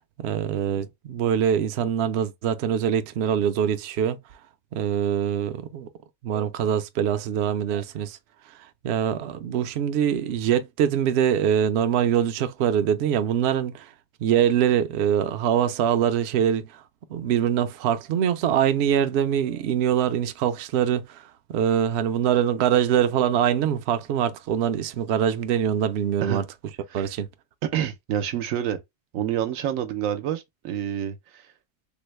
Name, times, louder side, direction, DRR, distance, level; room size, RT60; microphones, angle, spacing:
voice 1, 0.2-4.2 4.7-5.9 6.2-8.2 8.8-13.9 14.2-16.7 17.1-21.2 21.5-26.4 26.9-27.3, right 9 dB, 65° right, 0.7 m, -23 dB
voice 2, 27.6-28.8 29.1-31.4, right 10 dB, 85° right, 1.0 m, -28 dB
3.7 x 2.1 x 3.0 m
omnidirectional pair, 1.3 m